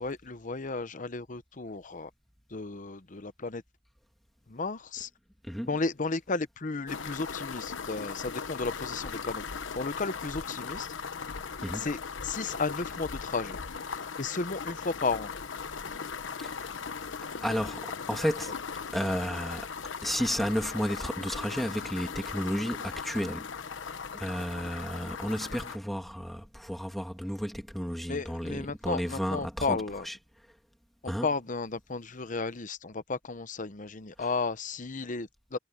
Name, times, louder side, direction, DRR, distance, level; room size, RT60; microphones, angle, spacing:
voice 1, 0.0-2.1 2.5-3.6 4.5-5.1 5.6-10.9 11.7-13.6 14.2-15.3 28.1-30.1 31.0-35.6, left 3 dB, 45° left, 0.9 m, -33 dB
sound 1, 6.9-25.8, left 5 dB, 80° left, 1.0 m, -38 dB
voice 2, 17.4-18.5 18.9-19.7 20.0-23.5 23.9-29.8 30.0-30.2 31.1-31.3 34.2-34.3, equal, ahead, 2.4 m, -32 dB
head